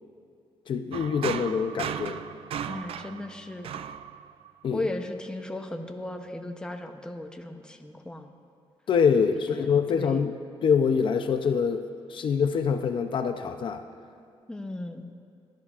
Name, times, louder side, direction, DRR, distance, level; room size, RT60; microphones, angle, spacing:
voice 1, 0.7-2.2 4.6-4.8 8.9-10.3 10.6-13.8, left 6 dB, 55° left, 7 dB, 0.5 m, -25 dB
sound 1, 0.9-4.7, right 8 dB, 65° right, 0.4 m, -36 dB
voice 2, 2.7-3.7 4.7-8.3 9.2-10.2 14.5-15.1, left 1 dB, 10° left, 4 dB, 0.7 m, -36 dB
19.5 x 12.0 x 2.4 m, 2.3 s
cardioid pair, 125°, 10 cm